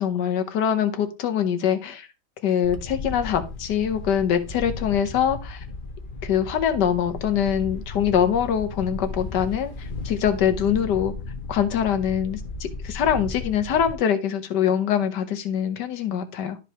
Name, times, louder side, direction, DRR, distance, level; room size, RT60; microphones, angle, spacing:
voice 1, 0.0-2.1 2.4-5.6 6.2-11.1 11.5-16.6, left 8 dB, 80° left, 7 dB, 1.5 m, -24 dB
Wind, 2.6-13.9, left 3 dB, 35° left, 1.0 m, -35 dB
12.0 x 5.2 x 2.9 m, 0.28 s
omnidirectional pair, 1.8 m